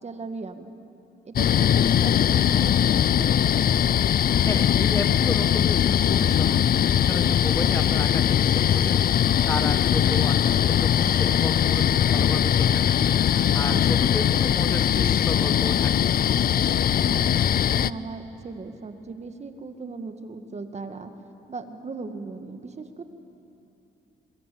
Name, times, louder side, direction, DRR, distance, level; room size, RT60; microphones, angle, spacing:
voice 1, 0.0-0.7 1.3-3.5 13.7-14.1 17.0-21.1 21.5-23.0, right 4 dB, 35° right, 7 dB, 1.8 m, -38 dB
sound 1, 1.4-17.9, left 10 dB, 50° left, 0.5 m, -21 dB
voice 2, 4.4-6.6 6.9-9.1 9.4-13.0 13.5-16.1, left 2 dB, 15° left, 8 dB, 1.2 m, -33 dB
23.5 x 21.5 x 8.6 m, 2.9 s
cardioid pair, 90°, 20 cm